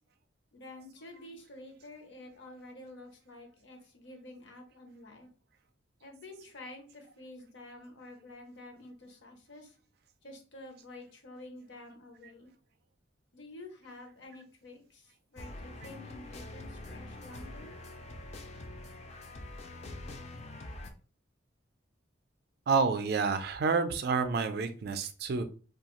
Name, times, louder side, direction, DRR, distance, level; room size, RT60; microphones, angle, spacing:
voice 1, 0.5-5.3 6.0-9.8 10.2-12.5 13.3-17.7, left 2 dB, 60° left, 3 dB, 0.7 m, -49 dB
sound 1, 15.4-20.9, left 2 dB, 35° left, 0.3 m, -45 dB
voice 2, 22.7-25.4, right 4 dB, 50° right, 9 dB, 0.3 m, -29 dB
2.7 x 2.3 x 2.9 m, 0.37 s
head